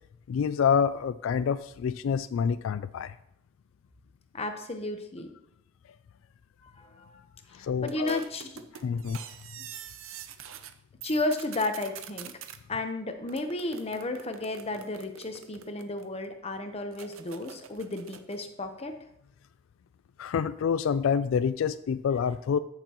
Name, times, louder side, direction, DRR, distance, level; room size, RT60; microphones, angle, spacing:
voice 1, 0.3-3.2 7.5-8.2 8.8-9.2 20.2-22.6, left 7 dB, 75° left, 13 dB, 0.3 m, -27 dB
voice 2, 4.3-5.3 6.6-7.2 7.6-8.6 11.0-12.3 12.7-18.9, left 2 dB, 30° left, 6 dB, 0.9 m, -33 dB
sound 1, 7.9-10.7 11.0-12.6 13.3-16.3 16.9-18.4, right 8 dB, 90° right, 0.6 m, -45 dB
13.5 x 6.8 x 3.0 m, 0.79 s
head